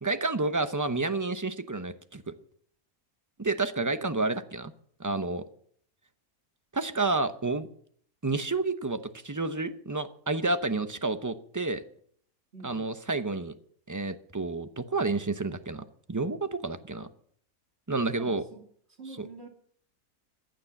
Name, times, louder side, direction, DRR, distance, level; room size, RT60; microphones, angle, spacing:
voice 1, 0.0-2.3 3.4-4.7 5.0-5.4 6.7-7.7 8.2-9.0 9.2-11.8 12.6-13.5 13.9-17.1 17.9-18.4 19.2-19.3, right 3 dB, 15° right, 10 dB, 0.6 m, -30 dB
voice 2, 12.5-12.9 18.2-18.6 19.0-19.5, right 3 dB, 45° right, 2 dB, 2.9 m, -46 dB
15.5 x 10.5 x 7.1 m, 0.62 s
omnidirectional pair, 1.5 m